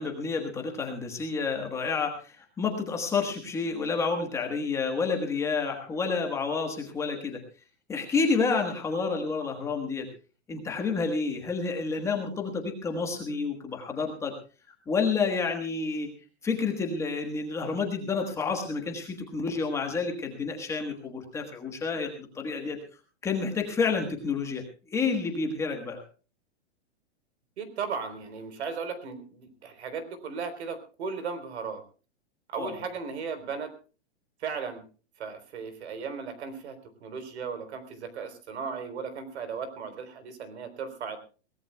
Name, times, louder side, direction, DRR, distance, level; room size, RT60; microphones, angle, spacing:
voice 1, 0.0-7.4 7.9-10.1 10.5-14.3 14.9-16.1 16.4-22.8 23.2-24.6 24.9-26.0 32.6-32.7, left 4 dB, 10° left, 3 dB, 1.3 m, -29 dB
voice 2, 27.6-31.8 32.5-33.7 34.4-34.8 35.2-41.2, right 5 dB, 65° right, 11 dB, 3.8 m, -36 dB
23.0 x 17.5 x 2.3 m, 0.35 s
supercardioid pair, 180°, 35 cm